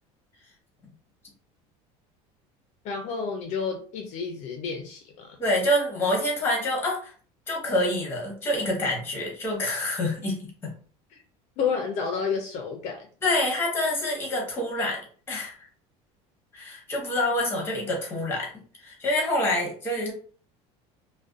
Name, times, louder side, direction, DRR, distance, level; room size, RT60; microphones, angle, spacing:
voice 1, 2.8-5.4 11.1-11.2 11.6-13.1, left 6 dB, 55° left, 2 dB, 0.5 m, -30 dB
voice 2, 5.4-7.1 7.5-10.7 13.2-15.5 16.5-18.5 18.8-20.1, left 1 dB, 15° left, -1 dB, 1.0 m, -27 dB
2.4 x 2.1 x 2.4 m, 0.42 s
cardioid pair, 135°, 14 cm